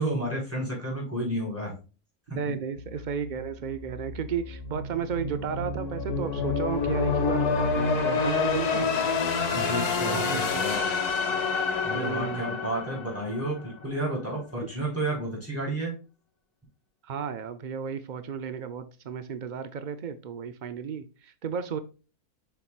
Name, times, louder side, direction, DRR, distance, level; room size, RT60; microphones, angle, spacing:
voice 1, 0.0-1.7 2.3-2.4 9.5-10.9 11.8-16.0, right 1 dB, 10° right, -4 dB, 3.7 m, -31 dB
voice 2, 2.4-8.9 10.0-10.9 11.9-12.6 14.6-14.8 17.0-21.8, right 7 dB, 90° right, 11 dB, 0.4 m, -34 dB
sound 1, 2.8-13.8, left 4 dB, 80° left, 1.7 m, -28 dB
6.8 x 5.8 x 2.4 m, 0.33 s
omnidirectional pair, 1.6 m